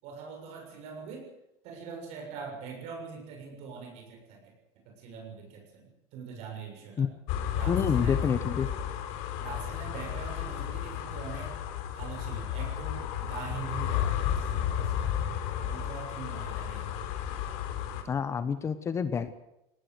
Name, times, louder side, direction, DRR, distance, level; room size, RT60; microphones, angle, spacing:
voice 1, 0.0-1.3 1.6-4.5 4.8-7.1 7.5-8.2 9.4-11.6 11.9-15.1 15.6-16.9, right 5 dB, 55° right, 2 dB, 7.2 m, -43 dB
sound 1, 7.3-18.0, left 9 dB, 60° left, 4.0 m, -32 dB
voice 2, 7.7-8.7 18.0-19.3, left 6 dB, 20° left, 12 dB, 1.0 m, -28 dB
22.5 x 18.5 x 8.1 m, 0.87 s
cardioid pair, 160°, 13 cm